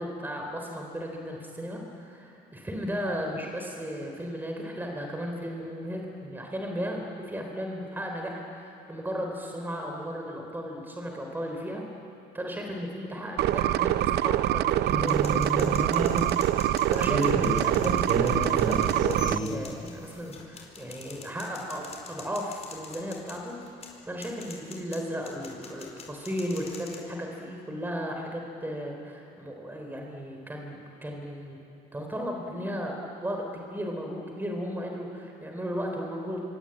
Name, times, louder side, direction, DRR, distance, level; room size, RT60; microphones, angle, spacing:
voice 1, 0.0-11.8 12.3-16.1 16.5-23.6 24.1-31.6 31.9-36.4, equal, 10° right, 2 dB, 3.7 m, -35 dB
sound 1, 13.4-19.4, right 13 dB, 75° right, 0.7 m, -25 dB
sound 2, 14.9-16.6 17.0-19.6, right 2 dB, 50° right, 4.1 m, -30 dB
sound 3, 15.0-27.0, left 5 dB, 40° left, 4.9 m, -46 dB
25.5 x 24.5 x 8.9 m, 2.8 s
cardioid pair, 110°, 17 cm